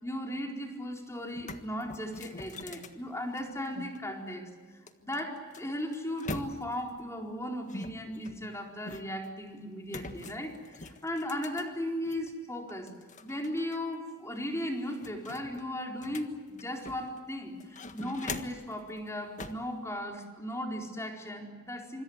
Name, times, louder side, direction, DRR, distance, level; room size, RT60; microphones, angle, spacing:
voice 1, 0.0-4.5 5.0-12.9 13.2-22.0, left 1 dB, 15° left, 2 dB, 4.3 m, -37 dB
sound 1, 0.8-0.9 1.2-4.0 4.9-6.9 7.7-9.3 9.9-12.3 12.7-13.8 14.1-14.2 14.6-17.2 17.6-18.7 19.4-19.7, left 3 dB, 35° left, 1.6 m, -43 dB
26.0 x 25.5 x 8.1 m, 1.5 s
head